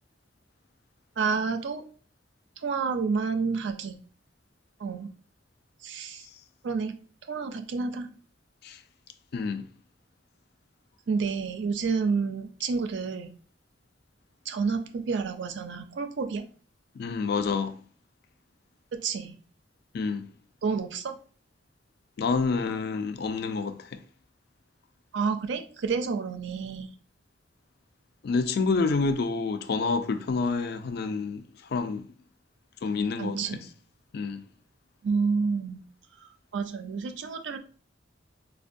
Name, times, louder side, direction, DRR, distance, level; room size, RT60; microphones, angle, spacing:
voice 1, 1.2-1.8 2.6-4.0 4.8-5.1 5.8-6.2 6.6-7.0 7.3-8.1 11.1-13.3 14.5-16.5 18.9-19.4 20.6-21.2 25.1-26.9 33.2-33.6 35.0-35.8 36.5-37.6, right 5 dB, 70° right, 0.4 m, -29 dB
voice 2, 9.3-9.7 17.0-17.7 19.9-20.3 22.2-24.0 28.2-31.4 31.7-32.0 32.8-33.4 34.1-34.4, left 4 dB, 55° left, 0.3 m, -28 dB
4.2 x 2.2 x 2.6 m
head